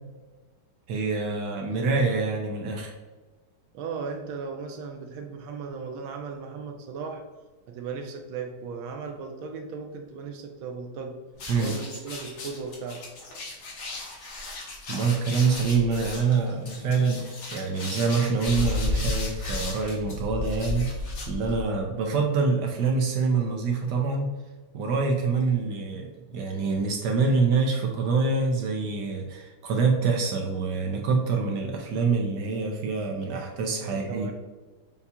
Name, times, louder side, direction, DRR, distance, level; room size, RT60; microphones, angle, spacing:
voice 1, 0.9-2.9 11.5-11.7 14.9-24.3 24.7-34.3, right 4 dB, 70° right, 1 dB, 1.1 m, -26 dB
voice 2, 3.7-7.2 7.7-11.2 11.6-13.1 33.8-34.3, right 5 dB, 90° right, 3 dB, 1.4 m, -36 dB
sound 1, 11.4-21.8, left 2 dB, 70° left, 1.9 m, -33 dB
6.8 x 2.8 x 2.3 m, 1.3 s
omnidirectional pair, 2.2 m